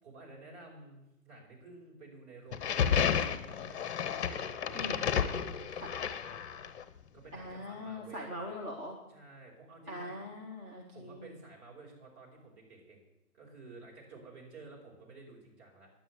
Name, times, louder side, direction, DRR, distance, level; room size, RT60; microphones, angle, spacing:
voice 1, 0.0-6.2 7.1-8.4 9.1-10.2 10.9-13.0 13.3-15.9, right 3 dB, 45° right, -2 dB, 5.3 m, -52 dB
sound 1, 2.5-6.8, left 8 dB, 45° left, 1.0 m, -32 dB
voice 2, 7.3-9.0 9.9-11.3, left 1 dB, 10° right, -2 dB, 0.6 m, -42 dB
10.0 x 9.3 x 8.0 m, 0.94 s
hypercardioid pair, 145°, 46 cm